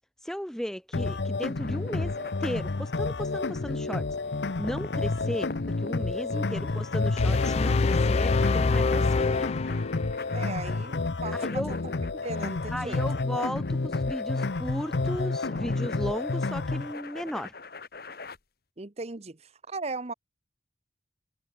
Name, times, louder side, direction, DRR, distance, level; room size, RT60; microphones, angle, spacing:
voice 1, 0.2-4.1 4.6-5.5 5.8-9.5 11.4-11.7 12.7-17.5, equal, 5° left, 0.9 m, -35 dB
sound 1, 0.9-16.9, left 3 dB, 75° left, 0.8 m, -30 dB
sound 2, 1.3-18.4, left 3 dB, 60° left, 1.9 m, -44 dB
voice 2, 6.3-6.7 10.3-11.8 12.1-13.0 18.8-20.1, right 3 dB, 35° right, 0.9 m, -38 dB
sound 3, 7.2-10.4, left 4 dB, 35° left, 0.4 m, -26 dB
head